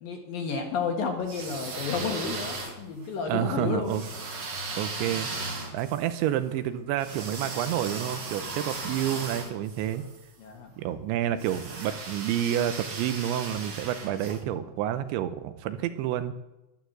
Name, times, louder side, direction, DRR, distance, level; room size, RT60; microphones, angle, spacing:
voice 1, 0.0-4.0 10.4-10.7, left 5 dB, 60° left, 3 dB, 2.7 m, -31 dB
sound 1, 1.2-3.1 3.9-10.2 11.4-14.4, right 3 dB, 55° right, 1.2 m, -37 dB
voice 2, 3.3-4.0 4.8-5.3 5.7-10.0 10.8-16.3, right 11 dB, 80° right, 11 dB, 3.0 m, -29 dB
12.0 x 11.5 x 7.9 m, 0.97 s
omnidirectional pair, 5.4 m